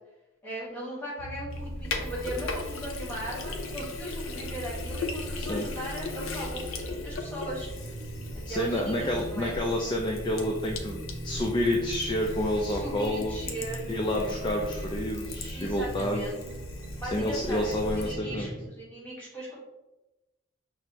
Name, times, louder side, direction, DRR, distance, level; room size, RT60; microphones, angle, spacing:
voice 1, 0.4-7.7 8.3-9.6 12.7-14.4 15.5-16.4 17.0-19.5, right 1 dB, 10° left, -6 dB, 1.4 m, -38 dB
sound 1, 1.2-18.7, right 1 dB, 75° right, 0.6 m, -40 dB
Sink (filling or washing), 1.5-18.1, left 3 dB, 90° left, 0.5 m, -39 dB
voice 2, 8.5-13.4 13.9-16.2 17.1-18.5, left 1 dB, 25° left, 0 dB, 0.3 m, -29 dB
5.9 x 2.0 x 2.8 m, 0.99 s
head